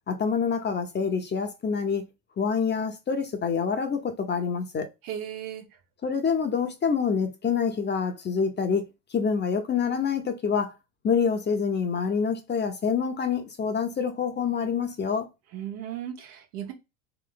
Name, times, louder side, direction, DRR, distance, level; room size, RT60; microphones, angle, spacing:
voice 1, 0.1-2.0 2.4-4.9 6.0-10.7 11.0-15.3, left 6 dB, 25° left, 0.9 m, -26 dB
voice 2, 5.0-5.6 15.5-16.7, right 10 dB, 75° right, 1.5 m, -36 dB
3.3 x 3.2 x 3.9 m
supercardioid pair, 105°, 42 cm